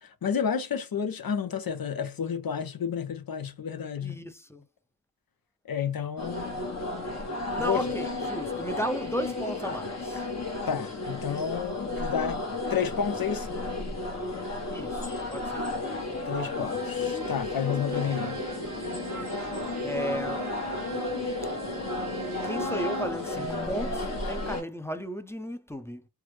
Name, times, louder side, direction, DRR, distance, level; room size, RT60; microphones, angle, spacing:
voice 1, 0.0-4.2 5.7-6.6 7.6-7.8 10.7-12.4 12.7-13.6 16.3-18.4, left 7 dB, 70° left, 0.7 m, -31 dB
voice 2, 4.0-4.7 7.5-10.2 14.7-15.7 19.8-20.6 22.4-26.1, equal, 5° left, 0.5 m, -35 dB
sound 1, 6.2-24.6, left 2 dB, 45° left, 1.0 m, -33 dB
Bowed string instrument, 16.4-23.3, right 5 dB, 85° right, 0.6 m, -41 dB
3.3 x 2.1 x 3.1 m
cardioid pair, 40°, 37 cm